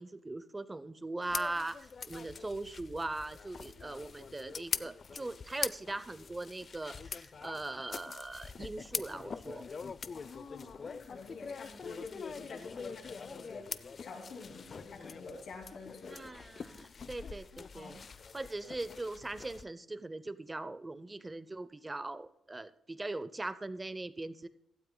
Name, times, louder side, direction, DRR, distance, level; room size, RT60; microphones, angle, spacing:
voice 1, 0.0-9.9 16.1-18.0 18.3-24.5, right 2 dB, 15° right, 14 dB, 0.6 m, -40 dB
sound 1, 1.2-19.6, left 5 dB, 40° left, 0.5 m, -44 dB
voice 2, 10.1-16.3 17.7-18.1, left 4 dB, 70° left, 2 dB, 2.5 m, -48 dB
16.5 x 12.5 x 2.3 m, 0.80 s
cardioid pair, 105°, 0 cm